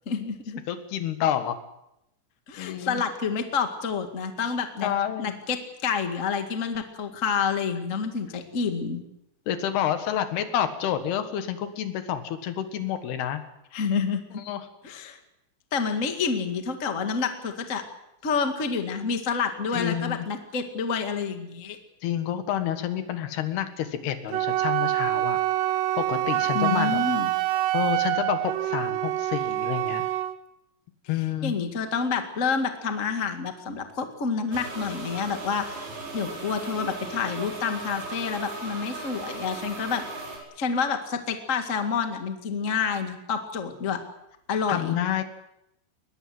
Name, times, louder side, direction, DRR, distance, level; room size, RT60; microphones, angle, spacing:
voice 1, 0.1-0.6 2.5-4.9 5.2-9.0 13.7-14.4 14.8-15.2 15.7-17.8 18.2-21.8 26.5-27.3 31.4-40.0 40.6-44.0 44.5-45.0, left 5 dB, 45° left, 6 dB, 0.9 m, -28 dB
voice 2, 0.7-1.6 2.6-3.0 4.8-5.4 9.5-13.4 14.5-14.7 19.7-20.3 22.0-25.4 26.0-27.1 27.7-30.0 31.1-31.6 44.7-45.2, left 10 dB, 70° left, 9 dB, 3.5 m, -29 dB
Wind instrument woodwind instrument, 24.3-30.4, right 15 dB, 80° right, 3.0 m, -26 dB
sound 1, 34.5-40.4, right 3 dB, 65° right, 6.8 m, -37 dB
21.5 x 20.5 x 7.8 m, 0.84 s
omnidirectional pair, 4.9 m